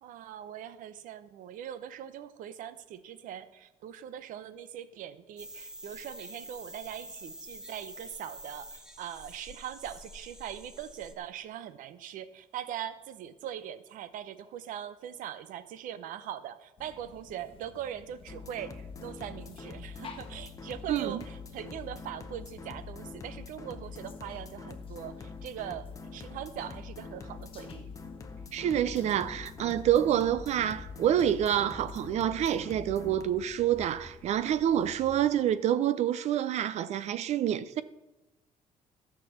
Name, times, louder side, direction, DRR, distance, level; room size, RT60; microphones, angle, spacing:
voice 1, 0.0-27.9, right 10 dB, 75° right, 0.8 m, -41 dB
sound 1, 5.4-11.1, right 1 dB, 5° right, 0.9 m, -47 dB
sound 2, 16.8-35.3, left 4 dB, 40° left, 1.3 m, -53 dB
sound 3, 18.3-33.2, left 5 dB, 25° left, 0.8 m, -44 dB
voice 2, 20.9-21.2 28.5-37.8, right 10 dB, 55° right, 0.5 m, -27 dB
14.0 x 6.0 x 7.3 m
cardioid pair, 170°, 14 cm